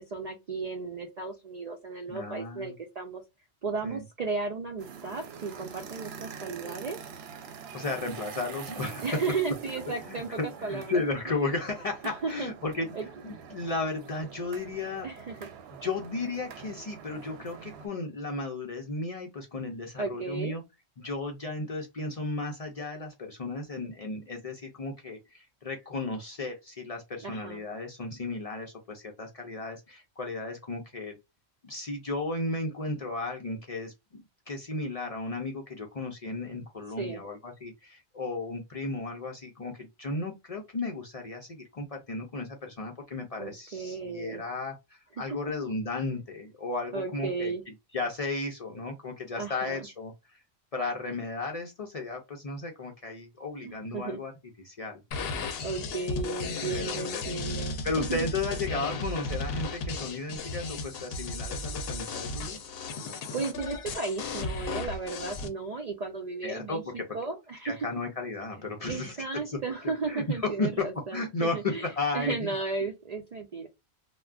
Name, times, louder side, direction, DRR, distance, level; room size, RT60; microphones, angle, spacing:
voice 1, 0.0-3.2 3.6-7.0 9.0-11.3 12.0-12.5 12.9-13.1 15.0-15.5 20.0-20.6 27.2-27.6 37.0-37.2 43.4-44.4 46.9-47.6 49.4-49.9 53.6-54.2 55.6-58.3 63.3-67.9 68.9-71.9 72.1-73.7, right 4 dB, 55° right, 0.4 m, -34 dB
voice 2, 2.1-2.7 3.8-4.0 7.7-9.2 10.0-12.9 13.2-15.1 15.8-20.6 21.0-31.2 31.6-47.5 47.9-50.4 50.7-54.3 54.6-55.0 56.7-57.2 57.8-62.6 66.4-67.1 67.6-69.2 69.5-69.6 70.1-70.2 70.6-70.7 71.1-72.5, left 3 dB, 45° left, 0.5 m, -34 dB
sound 1, 4.8-17.9, right 7 dB, 75° right, 0.8 m, -45 dB
sound 2, 55.1-65.5, left 3 dB, 70° left, 0.8 m, -35 dB
2.3 x 2.1 x 3.4 m
omnidirectional pair, 1.1 m